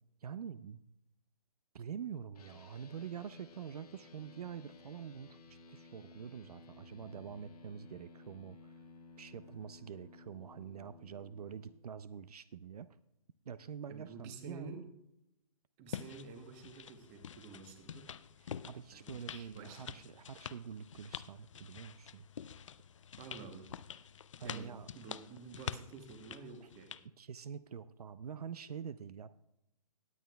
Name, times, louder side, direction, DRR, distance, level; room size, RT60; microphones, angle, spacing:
voice 1, 0.2-0.8 1.7-5.4 5.7-8.7 9.2-12.9 13.5-14.8 18.7-22.3 24.4-24.9 26.6-26.7 27.2-29.3, right 7 dB, 70° right, 15 dB, 0.5 m, -46 dB
sound 1, 2.3-11.7, left 3 dB, 70° left, 1.3 m, -56 dB
voice 2, 13.9-14.9 15.8-18.1 18.9-20.0 23.2-23.7 24.4-27.0, right 4 dB, 15° right, 7 dB, 0.9 m, -50 dB
sound 2, 15.9-27.0, left 8 dB, 55° left, 0.4 m, -47 dB
18.5 x 8.6 x 2.3 m, 0.85 s
hypercardioid pair, 160°, 20 cm